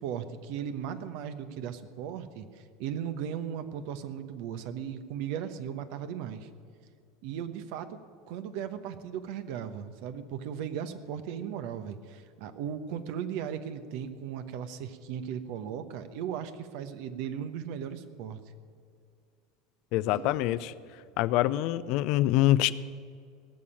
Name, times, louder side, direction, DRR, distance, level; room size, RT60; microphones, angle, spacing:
voice 1, 0.0-6.5 7.2-8.0 8.3-18.4 20.0-21.2, right 8 dB, 60° right, 10 dB, 1.0 m, -37 dB
voice 2, 19.9-20.7 21.2-22.7, left 15 dB, 60° left, 16 dB, 0.5 m, -25 dB
17.5 x 7.0 x 9.0 m, 2.4 s
hypercardioid pair, 75°, 0 cm